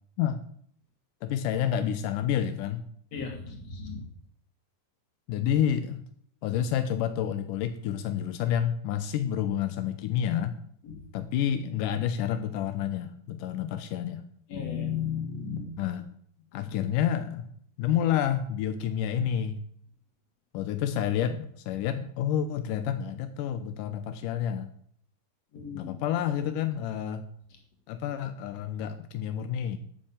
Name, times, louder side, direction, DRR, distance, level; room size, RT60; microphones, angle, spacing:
voice 1, 1.2-2.8 5.3-6.0 6.4-10.5 11.1-14.2 15.8-16.1 16.5-17.5 17.8-19.6 20.5-24.7 25.7-27.2 27.9-29.8, left 9 dB, 75° left, 9 dB, 1.9 m, -29 dB
voice 2, 3.1-4.0 10.8-11.0 14.5-15.7 25.5-25.9, left 7 dB, 45° left, 3 dB, 3.6 m, -34 dB
12.5 x 8.8 x 8.9 m, 0.63 s
omnidirectional pair, 4.8 m